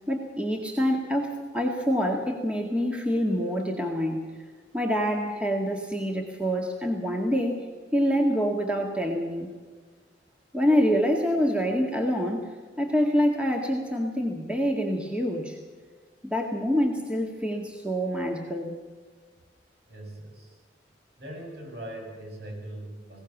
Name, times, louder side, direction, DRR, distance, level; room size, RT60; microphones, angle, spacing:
voice 1, 0.1-4.2 4.7-7.6 7.9-9.5 10.5-12.5 12.8-15.6 16.2-18.7, equal, 5° right, 1 dB, 1.9 m, -26 dB
voice 2, 19.9-20.6 21.2-23.2, right 1 dB, 60° right, 1 dB, 7.6 m, -40 dB
21.0 x 17.5 x 7.3 m, 1.5 s
head